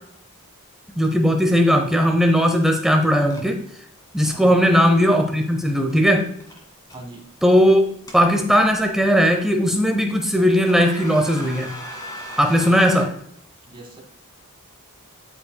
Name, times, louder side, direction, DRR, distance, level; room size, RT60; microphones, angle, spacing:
sound 1, 1.0-1.1 1.5-1.7 3.3-3.5 4.0-4.3 5.9-6.1 6.4-7.0 7.8-8.8 9.4-9.5 10.1-10.3 10.6-13.1, equal, 15° left, 1.9 m, -37 dB
voice 1, 1.0-3.6 4.1-6.3 7.4-7.9 8.1-11.7 12.4-13.1, equal, ahead, 4 dB, 0.7 m, -18 dB
voice 2, 4.3-4.6 6.9-7.2 13.7-14.0, right 2 dB, 25° right, 1 dB, 1.7 m, -40 dB
13.0 x 5.4 x 2.2 m, 0.68 s
head